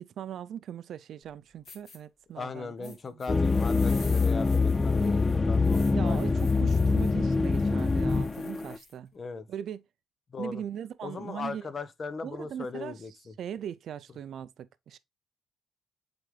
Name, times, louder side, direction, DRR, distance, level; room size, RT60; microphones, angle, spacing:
voice 1, 0.0-3.2 5.9-9.1 9.5-9.8 10.4-11.6 12.2-13.0 13.4-15.0, right 9 dB, 65° right, 0.4 m, -39 dB
sound 1, 1.2-1.3 1.6-2.0 2.8-9.0, left 3 dB, 55° left, 2.5 m, -51 dB
voice 2, 2.4-6.3 9.1-9.5 10.3-10.6 11.0-13.3, left 4 dB, 40° left, 0.9 m, -38 dB
sound 2, 3.3-8.8, left 4 dB, 25° left, 0.3 m, -25 dB
8.0 x 3.9 x 3.3 m
cardioid pair, 90°, 0 cm